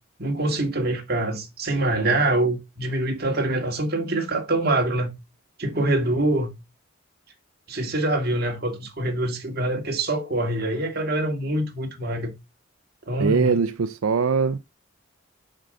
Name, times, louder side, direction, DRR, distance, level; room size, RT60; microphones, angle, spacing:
voice 1, 0.2-5.2 5.6-6.6 7.7-12.3 13.1-13.6, right 2 dB, 45° right, 1.9 m, -25 dB
voice 2, 13.2-14.6, right 5 dB, 90° right, 0.5 m, -22 dB
7.5 x 3.8 x 6.5 m
head